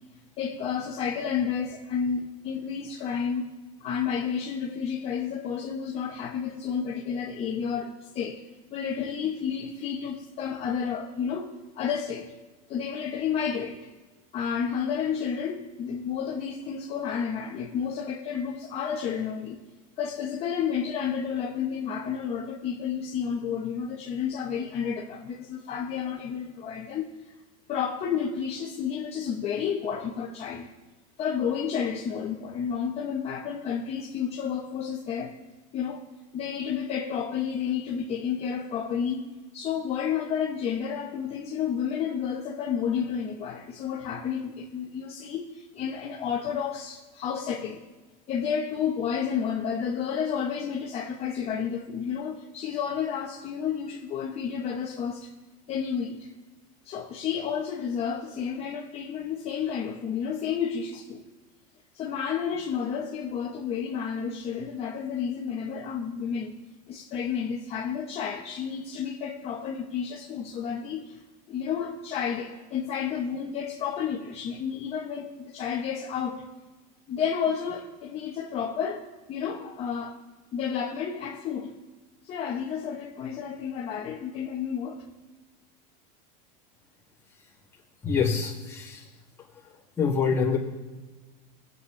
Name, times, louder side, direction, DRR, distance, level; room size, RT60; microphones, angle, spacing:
voice 1, 0.4-3.5 3.8-8.4 8.7-11.5 11.7-12.3 12.7-13.9 14.3-19.6 20.0-27.1 27.7-30.6 31.2-35.4 35.7-36.0 36.3-39.3 39.5-47.8 48.3-55.3 55.7-56.3 56.8-61.2 61.9-66.5 66.9-71.2 71.5-76.4 77.1-80.2 80.5-81.8 82.2-85.0, left 7 dB, 30° left, 1.1 m, -31 dB
voice 2, 88.0-89.1 90.0-90.6, left 5 dB, 15° left, 2.2 m, -25 dB
19.0 x 7.9 x 3.3 m
supercardioid pair, 145°, 19 cm